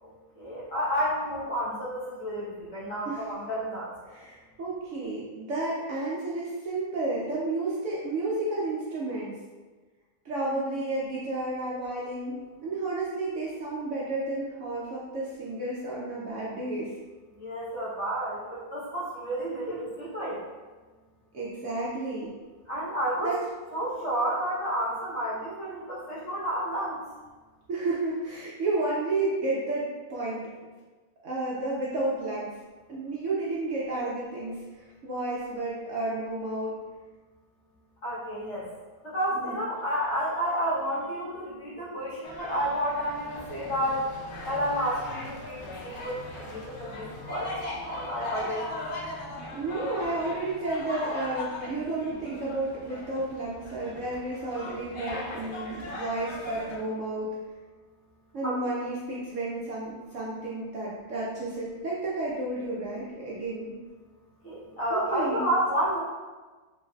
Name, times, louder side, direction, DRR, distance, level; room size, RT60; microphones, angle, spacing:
voice 1, 0.0-3.9 17.3-20.4 22.7-23.3 23.7-27.0 38.0-38.7 39.0-44.1 44.4-47.5 47.8-48.6 58.4-58.6 64.4-66.0, equal, 50° left, -8 dB, 1.1 m, -30 dB
voice 2, 4.1-9.3 10.2-16.9 21.3-22.3 23.2-23.4 27.7-30.4 31.2-32.6 32.9-36.8 39.3-39.6 49.5-57.4 58.3-63.7 64.9-65.5, right 2 dB, 65° right, -6 dB, 0.8 m, -31 dB
sound 1, 42.2-56.8, left 2 dB, 90° left, 0.4 m, -39 dB
3.3 x 3.0 x 2.2 m, 1.3 s
omnidirectional pair, 1.7 m